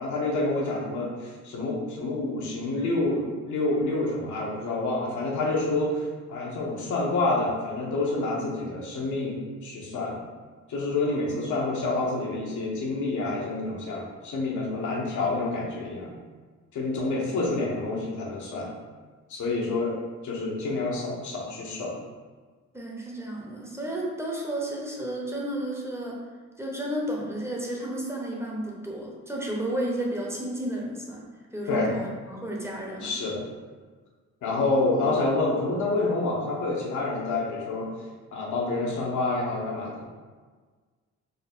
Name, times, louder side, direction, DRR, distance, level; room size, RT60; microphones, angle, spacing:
voice 1, 0.0-10.2 10.7-16.1 16.7-18.7 19.3-20.0 20.2-21.9 31.7-31.9 33.0-33.4 34.4-37.9 38.3-40.0, left 2 dB, 75° left, -3 dB, 1.1 m, -28 dB
voice 2, 22.7-26.2 26.6-31.2 31.5-33.1, right 1 dB, 10° right, -3 dB, 0.9 m, -32 dB
4.0 x 2.1 x 4.4 m, 1.4 s
cardioid pair, 90°, 30 cm